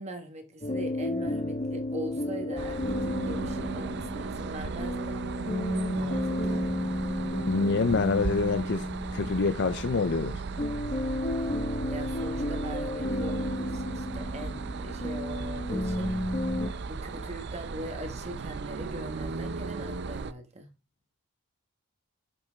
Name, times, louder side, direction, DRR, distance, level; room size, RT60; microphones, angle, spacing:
voice 1, 0.0-5.2 5.9-6.6 11.9-16.1 16.8-20.7, right 1 dB, 30° right, 1.2 m, -41 dB
sound 1, 0.6-16.7, left 1 dB, 35° left, 1.1 m, -32 dB
sound 2, 2.6-20.3, right 4 dB, 50° right, 0.5 m, -37 dB
voice 2, 7.5-8.9 9.1-10.4, left 4 dB, 55° left, 0.5 m, -26 dB
10.5 x 5.5 x 3.4 m
head